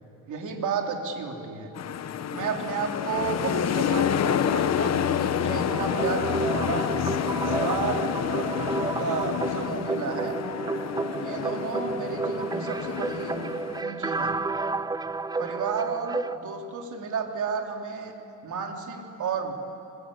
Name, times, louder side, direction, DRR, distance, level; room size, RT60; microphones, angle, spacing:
voice 1, 0.3-1.8 2.3-6.9 7.4-10.4 11.2-13.4 13.8-14.4 15.4-18.1 18.4-19.5, right 5 dB, 60° right, 2 dB, 3.4 m, -32 dB
sound 1, 1.8-13.8, left 9 dB, 50° left, 1.1 m, -28 dB
sound 2, 5.6-16.4, right 3 dB, 10° right, 0.5 m, -31 dB
25.0 x 22.0 x 8.6 m, 2.7 s
cardioid pair, 120°, 34 cm